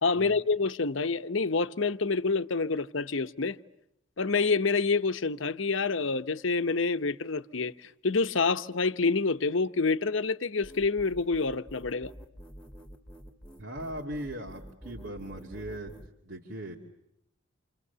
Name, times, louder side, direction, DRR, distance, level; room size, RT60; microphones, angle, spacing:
voice 1, 0.0-3.6 4.2-12.1, left 4 dB, 75° left, 1.0 m, -27 dB
sound 1, 10.6-16.1, equal, 5° left, 2.0 m, -48 dB
voice 2, 13.6-16.0 16.2-16.8, right 1 dB, 65° right, 2.6 m, -39 dB
29.0 x 27.5 x 6.9 m
head